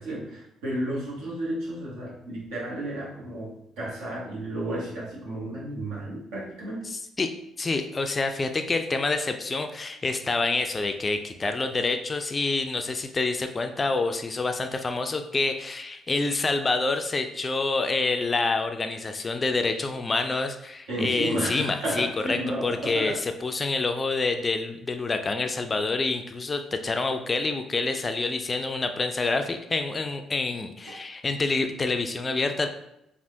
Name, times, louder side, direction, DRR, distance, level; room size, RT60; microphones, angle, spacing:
voice 1, 0.0-6.9 20.9-23.2, right 1 dB, 70° right, -6 dB, 1.1 m, -32 dB
voice 2, 6.8-7.3 7.6-32.7, left 3 dB, 30° left, 7 dB, 0.3 m, -27 dB
3.3 x 2.4 x 2.6 m, 0.82 s
hypercardioid pair, 45°, 0 cm